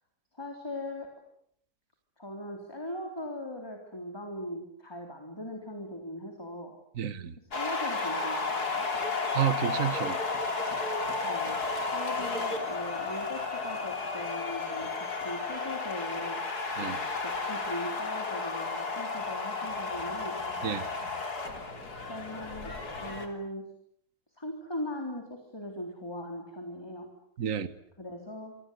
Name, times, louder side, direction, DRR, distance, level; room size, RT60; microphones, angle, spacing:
voice 1, 0.3-1.1 2.2-6.8 7.5-8.9 11.2-11.6 11.9-16.4 16.8-20.4 22.1-23.6 24.4-27.1 28.0-28.6, left 1 dB, 15° left, 3 dB, 3.7 m, -39 dB
voice 2, 7.0-7.4 9.3-10.2 16.8-17.0 20.6-20.9 27.4-27.7, right 9 dB, 55° right, 13 dB, 1.7 m, -30 dB
sound 1, 7.5-23.3, left 4 dB, 70° left, 3.8 m, -33 dB
27.0 x 25.0 x 8.3 m, 0.70 s
omnidirectional pair, 1.7 m